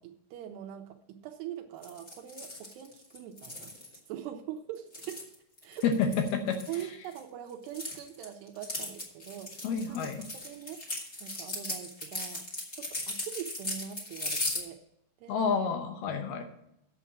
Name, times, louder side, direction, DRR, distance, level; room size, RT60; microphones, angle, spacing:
voice 1, 0.0-3.7 4.1-5.3 5.6-5.8 6.7-10.1 10.4-14.8 15.2-15.4 16.4-16.5, right 11 dB, 80° right, 4 dB, 2.7 m, -43 dB
sound 1, 1.8-4.0 4.7-7.2 7.5-14.6, left 2 dB, 25° left, 1.6 m, -37 dB
voice 2, 5.8-6.6 9.6-10.2 15.3-16.4, left 5 dB, 75° left, 5 dB, 2.6 m, -29 dB
8.5 x 7.1 x 7.1 m, 0.81 s
omnidirectional pair, 4.9 m